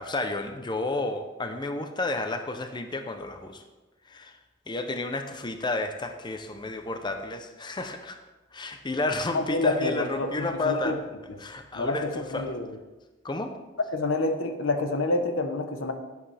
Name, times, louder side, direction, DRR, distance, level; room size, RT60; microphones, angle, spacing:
voice 1, 0.0-3.6 4.1-4.4 4.7-8.2 8.5-11.0 11.4-12.5 13.2-13.5, left 2 dB, 25° left, 7 dB, 0.7 m, -31 dB
voice 2, 9.3-11.0 11.7-12.7 13.9-15.9, left 2 dB, 85° left, 6 dB, 1.0 m, -28 dB
11.0 x 9.8 x 3.4 m, 1.1 s
head